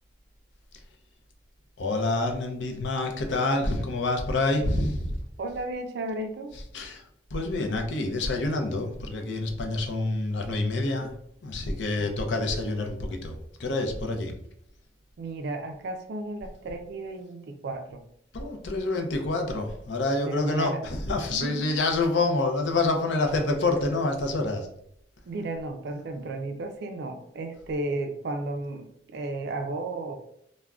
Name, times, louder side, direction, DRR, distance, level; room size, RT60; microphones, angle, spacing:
voice 1, 1.8-5.1 6.7-7.0 7.3-11.1 11.4-13.3 13.6-14.3 18.3-24.7, left 2 dB, 80° left, 4 dB, 0.5 m, -27 dB
voice 2, 5.4-6.5 12.0-12.1 15.2-18.0 20.2-20.8 21.3-21.8 25.3-30.2, right 2 dB, 60° right, 5 dB, 0.3 m, -34 dB
2.3 x 2.1 x 3.4 m, 0.70 s
head